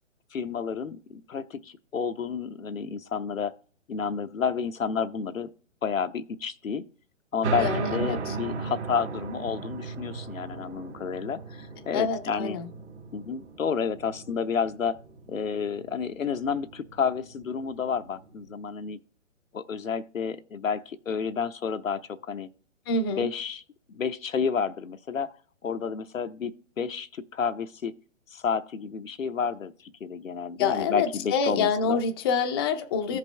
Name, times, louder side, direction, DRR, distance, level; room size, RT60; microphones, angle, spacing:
voice 1, 0.3-3.5 3.9-5.5 5.8-6.8 7.3-12.6 13.1-15.0 15.3-19.0 19.5-22.5 23.1-23.6 23.9-25.3 25.6-27.9 28.3-29.7 30.0-32.0 33.1-33.2, left 6 dB, 90° left, 0.8 m, -30 dB
sound 1, 7.4-18.5, right 4 dB, 60° right, 2.0 m, -37 dB
voice 2, 7.6-8.3 11.9-12.6 22.9-23.3 30.6-33.2, left 5 dB, 20° left, 0.5 m, -27 dB
14.5 x 5.2 x 3.2 m
hypercardioid pair, 135°, 38 cm